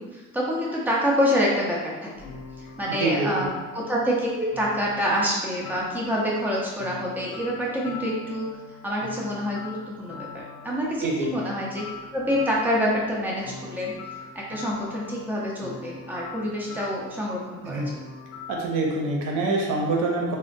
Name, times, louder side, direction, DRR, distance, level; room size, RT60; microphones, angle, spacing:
voice 1, 0.0-2.1 2.6-3.5 3.7-8.5 8.8-11.8 12.1-13.9 14.3-17.8, equal, 5° right, -4 dB, 0.8 m, -27 dB
sound 1, 2.1-18.7, left 5 dB, 65° left, 0.6 m, -42 dB
voice 2, 3.0-3.5 11.0-11.3 17.6-17.9 18.5-20.4, right 2 dB, 85° right, 0 dB, 0.6 m, -25 dB
3.7 x 2.1 x 2.5 m, 1.3 s
cardioid pair, 90°, 30 cm